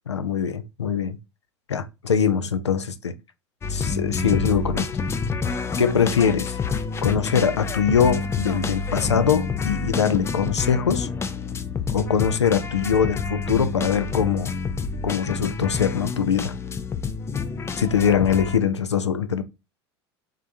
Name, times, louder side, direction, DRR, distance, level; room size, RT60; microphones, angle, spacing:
voice 1, 0.1-1.2 1.7-3.2 3.7-4.9 5.8-6.6 7.0-11.1 11.9-14.5 15.0-16.6 17.8-19.4, left 7 dB, 80° left, 0.5 m, -22 dB
sound 1, 3.6-18.6, left 5 dB, 20° left, 0.4 m, -28 dB
3.6 x 3.3 x 2.6 m
figure-of-eight pair, 80°, 14 cm